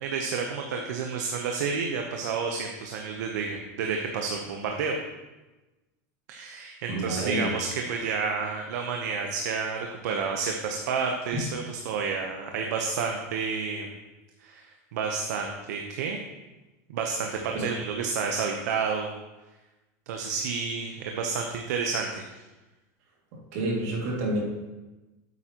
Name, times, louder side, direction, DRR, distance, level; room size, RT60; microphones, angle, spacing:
voice 1, 0.0-5.0 6.3-13.9 14.4-14.6 14.9-16.2 16.9-19.1 20.1-22.2, right 5 dB, 75° right, 2 dB, 0.9 m, -30 dB
voice 2, 6.9-7.6 11.3-11.4 17.5-17.7 23.3-24.4, right 1 dB, 55° right, -2 dB, 2.3 m, -29 dB
9.1 x 8.2 x 2.9 m, 1.1 s
supercardioid pair, 170°, 9 cm